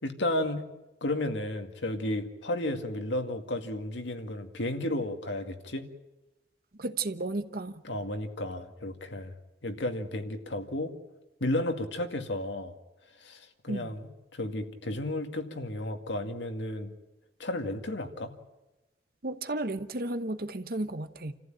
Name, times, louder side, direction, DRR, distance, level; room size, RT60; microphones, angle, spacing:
voice 1, 0.0-0.6 1.0-5.9 7.8-9.3 9.6-10.9 11.4-12.7 13.2-14.0 14.3-16.9 17.4-18.3, left 1 dB, 85° left, 2.1 m, -33 dB
voice 2, 6.8-7.8 13.7-13.9 19.2-21.3, right 2 dB, 55° right, 1.1 m, -33 dB
28.5 x 14.5 x 9.0 m
head